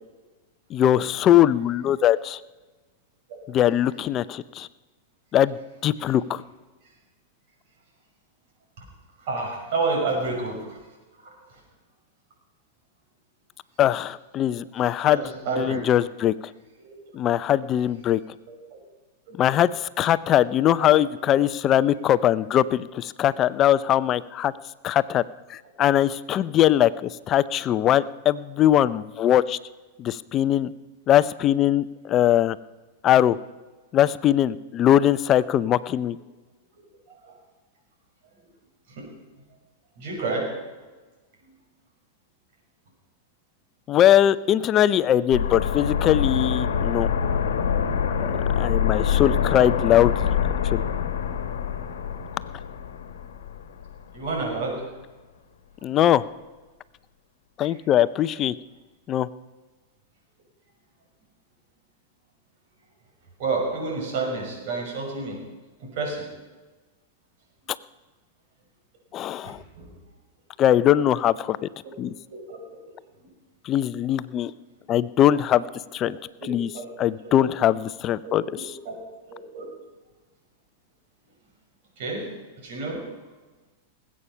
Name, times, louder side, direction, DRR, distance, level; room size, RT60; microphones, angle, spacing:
voice 1, 0.7-2.4 3.5-4.7 5.3-5.6 5.8-6.4 13.8-15.2 15.5-16.3 17.1-18.2 19.4-24.5 24.8-25.2 25.5-29.6 30.0-30.7 31.1-32.6 33.0-33.4 33.9-36.2 43.9-47.1 48.2-50.3 50.7-50.8 55.8-56.2 57.6-58.5 59.1-59.3 69.1-69.6 70.6-71.6 72.0-72.1 73.7-74.5 74.9-75.7 75.9-76.2 76.5-76.7 77.0-78.7, left 11 dB, 35° left, 16 dB, 0.5 m, -21 dB
voice 2, 9.2-10.8 11.2-11.3 14.8-15.8 16.8-16.9 18.5-18.8 19.3-19.4 20.8-20.9 37.2-37.3 39.0-39.1 40.0-40.5 54.1-54.8 57.6-57.7 63.4-65.4 65.8-66.3 69.4-69.9 71.8-71.9 72.3-72.6 76.4-76.5 76.7-76.9 77.2-77.3 78.2-79.0 79.3-79.7 82.0-82.3 82.6-83.0, right 3 dB, 60° right, 0 dB, 5.9 m, -30 dB
sound 1, 45.3-54.0 54.3-54.4, left 7 dB, 85° left, 1.2 m, -25 dB
19.5 x 8.6 x 5.6 m, 1.2 s
hypercardioid pair, 115°, 0 cm